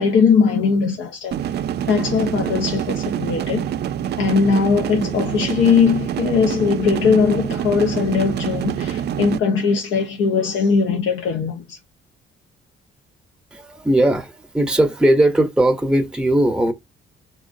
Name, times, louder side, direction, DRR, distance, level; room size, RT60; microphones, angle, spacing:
voice 1, 0.0-1.4 1.9-3.6 4.2-11.8, left 5 dB, 85° left, 0.7 m, -19 dB
sound 1, 1.3-9.4, right 9 dB, 55° right, 0.4 m, -26 dB
voice 2, 13.5-16.7, right 1 dB, 5° right, 0.6 m, -18 dB
3.6 x 3.1 x 2.5 m
cardioid pair, 90°, 20 cm